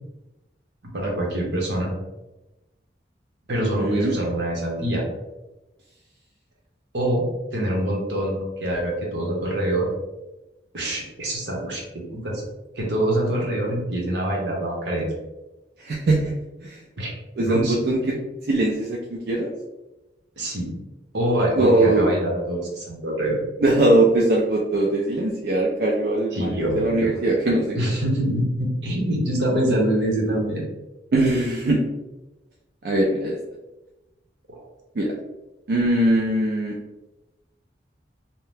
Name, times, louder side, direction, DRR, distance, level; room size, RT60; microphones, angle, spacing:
voice 1, 0.9-1.9 3.5-5.0 6.9-7.2 7.5-9.9 10.7-12.4 12.8-15.1 17.0-17.1 17.4-17.7 18.0-18.1 20.4-20.7 21.1-23.4 26.3-27.1 27.7-30.6 34.5-34.6, right 1 dB, 85° right, -1 dB, 0.9 m, -25 dB
voice 2, 3.6-4.1 15.8-16.3 16.6-16.8 17.4-18.1 18.5-19.5 21.6-22.1 23.6-28.0 31.1-31.8 32.8-33.4 35.0-35.1 35.7-36.7, right 1 dB, 60° right, -2 dB, 0.4 m, -21 dB
2.7 x 2.1 x 3.3 m, 1.0 s
head